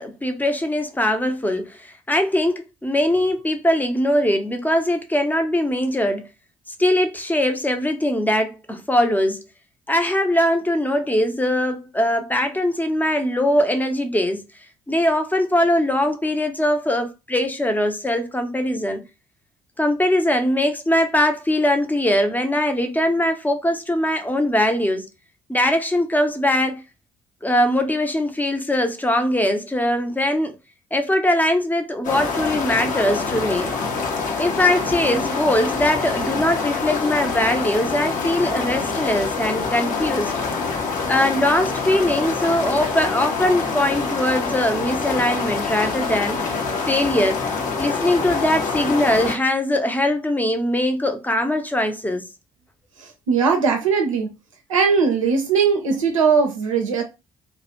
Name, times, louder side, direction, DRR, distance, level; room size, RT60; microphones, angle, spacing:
voice 1, 0.0-6.3 6.8-9.4 9.9-14.4 14.9-19.0 19.8-25.1 25.5-26.8 27.4-30.6 30.9-33.7 34.4-40.3 41.1-46.4 46.9-47.4 47.8-52.2, left 1 dB, 10° left, 0.5 m, -21 dB
sound 1, 32.0-49.4, left 4 dB, 55° left, 0.6 m, -25 dB
voice 2, 53.0-54.3 54.7-57.0, right 5 dB, 90° right, 0.4 m, -19 dB
2.3 x 2.1 x 2.8 m
figure-of-eight pair, 45°, 16 cm